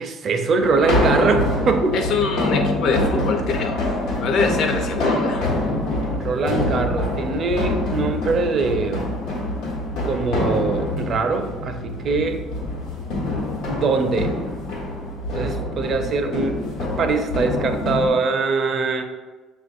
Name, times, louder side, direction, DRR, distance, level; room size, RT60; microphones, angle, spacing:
voice 1, 0.0-2.0 6.1-9.1 10.0-12.4 13.7-14.3 15.3-19.0, right 4 dB, 45° right, 6 dB, 0.5 m, -22 dB
sound 1, 0.6-18.1, left 2 dB, 90° left, 1.1 m, -25 dB
voice 2, 1.9-3.9 4.2-5.5, left 4 dB, 60° left, 3 dB, 0.6 m, -24 dB
6.2 x 2.5 x 2.5 m, 1.3 s
cardioid pair, 110°, 0 cm